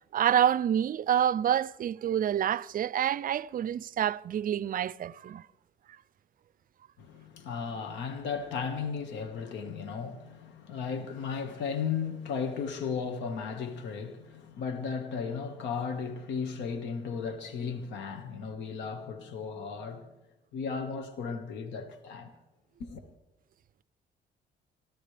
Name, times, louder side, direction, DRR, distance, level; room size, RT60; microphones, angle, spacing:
voice 1, 0.1-5.4, right 10 dB, 50° right, 0.4 m, -27 dB
voice 2, 7.0-20.1 20.5-22.3 22.8-23.1, left 6 dB, 85° left, 1.7 m, -35 dB
28.0 x 12.5 x 3.4 m
cardioid pair, 75°, 18 cm